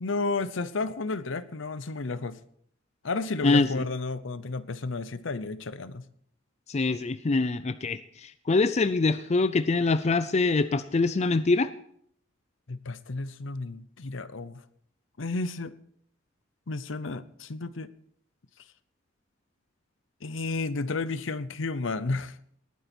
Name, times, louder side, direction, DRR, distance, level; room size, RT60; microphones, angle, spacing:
voice 1, 0.0-2.4 3.0-6.0 12.7-14.6 15.2-15.7 16.7-17.9 20.2-22.4, left 3 dB, 65° left, 15 dB, 0.8 m, -32 dB
voice 2, 3.4-3.8 6.7-11.7, left 3 dB, 35° left, 13 dB, 0.5 m, -24 dB
19.5 x 9.4 x 4.4 m, 0.64 s
head